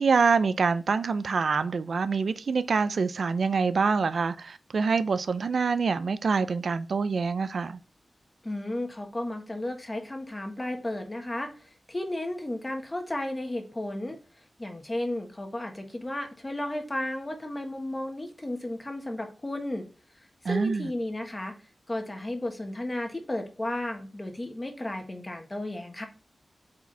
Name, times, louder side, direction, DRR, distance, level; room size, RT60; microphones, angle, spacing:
voice 1, 0.0-7.8 20.4-20.9, right 5 dB, 70° right, 0.5 m, -25 dB
voice 2, 8.4-11.5 11.9-14.2 14.6-19.8 20.4-21.6 21.9-26.1, left 1 dB, 20° left, 1.6 m, -33 dB
8.3 x 4.9 x 3.4 m
wide cardioid pair, 110°, 0 cm